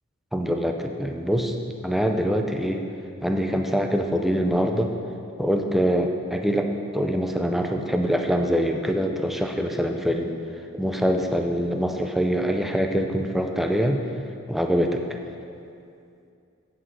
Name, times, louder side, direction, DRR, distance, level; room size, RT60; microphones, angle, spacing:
voice 1, 0.3-1.5 1.8-2.8 3.2-4.9 5.4-10.3 10.7-14.0 14.5-15.0, equal, ahead, 4 dB, 0.4 m, -24 dB
8.0 x 7.3 x 4.8 m, 2.5 s
head